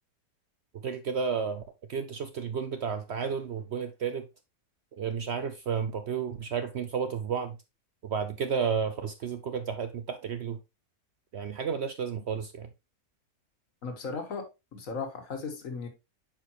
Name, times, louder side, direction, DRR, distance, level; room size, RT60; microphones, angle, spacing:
voice 1, 0.7-1.6 1.9-4.3 5.0-7.6 8.0-10.6 11.3-12.7, right 6 dB, 60° right, 0.8 m, -32 dB
voice 2, 13.8-15.9, left 4 dB, 60° left, 1.8 m, -36 dB
8.6 x 5.1 x 3.0 m
omnidirectional pair, 1.6 m